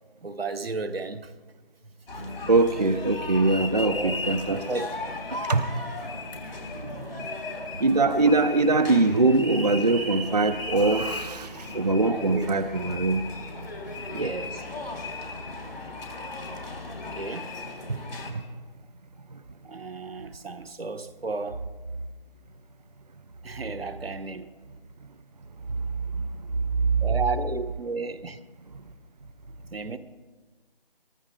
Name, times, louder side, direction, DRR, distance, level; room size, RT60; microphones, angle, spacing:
voice 1, 0.2-1.3 3.8-4.1 4.5-4.9 12.1-12.5 14.1-14.6 17.1-17.6 19.6-21.7 23.4-24.5 27.0-28.4 29.7-30.0, right 4 dB, 85° right, 1.1 m, -33 dB
sound 1, 2.1-18.3, left 2 dB, 85° left, 3.5 m, -36 dB
voice 2, 2.2-4.6 5.5-5.6 7.8-11.5 11.7-13.2 14.1-14.4 18.3-18.4, right 3 dB, 45° right, 0.5 m, -22 dB
23.0 x 13.0 x 3.7 m
figure-of-eight pair, 175°, 29 cm